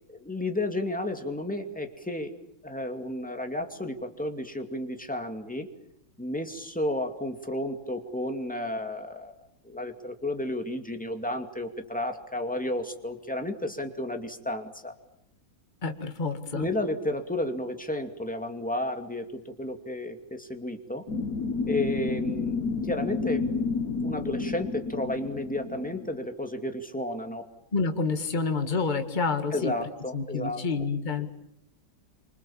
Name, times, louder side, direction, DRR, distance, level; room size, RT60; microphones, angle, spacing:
voice 1, 0.1-2.3 2.6-5.7 6.2-9.3 9.6-14.9 16.5-21.0 21.6-22.6 22.8-23.5 24.0-27.5 29.5-30.6, left 1 dB, 5° left, 5 dB, 2.4 m, -32 dB
voice 2, 15.8-16.7 27.7-29.7 30.1-31.3, left 4 dB, 25° left, 6 dB, 2.0 m, -28 dB
sound 1, 21.1-26.1, left 4 dB, 55° left, 1.7 m, -30 dB
28.5 x 26.0 x 7.4 m, 0.79 s
omnidirectional pair, 2.0 m